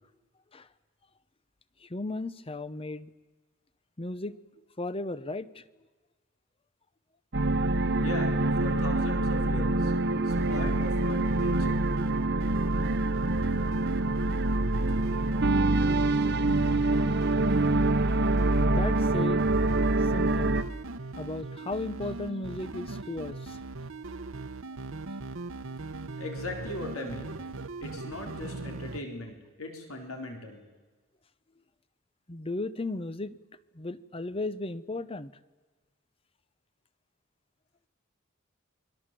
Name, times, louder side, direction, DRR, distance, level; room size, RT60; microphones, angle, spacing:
voice 1, 1.8-3.1 4.0-4.4 4.8-5.6 16.9-17.1 18.7-19.5 20.0-20.6 21.2-23.6 32.3-33.4 33.7-35.3, left 2 dB, 25° left, 15 dB, 0.8 m, -35 dB
sound 1, 7.3-20.6, right 2 dB, 50° right, 1.0 m, -25 dB
voice 2, 7.9-8.3 8.6-11.8 25.6-25.7 26.2-27.4 27.8-30.6, left 2 dB, 80° left, 3 dB, 4.2 m, -39 dB
sound 2, 10.4-29.0, right 3 dB, 70° right, 1.1 m, -39 dB
29.5 x 22.5 x 7.7 m, 1.3 s
head